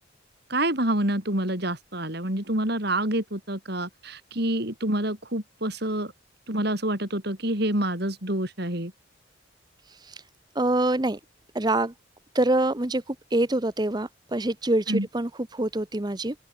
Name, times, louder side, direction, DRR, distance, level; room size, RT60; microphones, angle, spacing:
voice 1, 0.5-6.1 6.5-8.9 14.9-15.1, right 1 dB, 50° right, 4.9 m, -27 dB
voice 2, 9.9-10.2 10.5-11.2 11.5-11.9 12.3-16.3, right 1 dB, 20° right, 0.8 m, -25 dB
open air
head